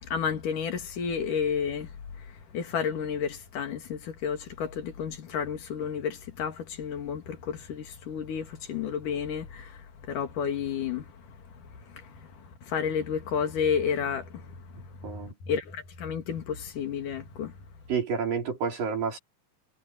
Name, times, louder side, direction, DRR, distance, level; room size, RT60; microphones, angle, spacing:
voice 1, 0.0-17.6, left 7 dB, 70° left, 3.8 m, -32 dB
voice 2, 15.0-15.3 17.9-19.2, right 6 dB, 80° right, 6.7 m, -29 dB
omnidirectional pair, 3.8 m